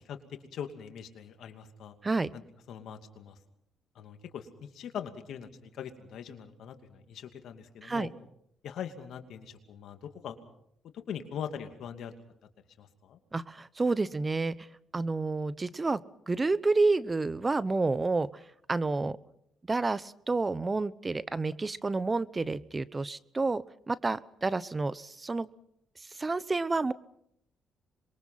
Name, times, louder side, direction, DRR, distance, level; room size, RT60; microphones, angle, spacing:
voice 1, 0.0-1.9 2.3-2.4 2.7-3.4 3.9-8.1 8.6-10.4 10.9-12.1 12.8-13.2, left 8 dB, 70° left, 7 dB, 2.6 m, -42 dB
voice 2, 13.3-14.5 14.9-16.0 16.3-18.3 18.7-19.2 19.7-25.5 26.2-26.9, right 3 dB, 30° right, 17 dB, 1.0 m, -29 dB
26.5 x 23.0 x 5.9 m, 0.73 s
supercardioid pair, 60°, 0 cm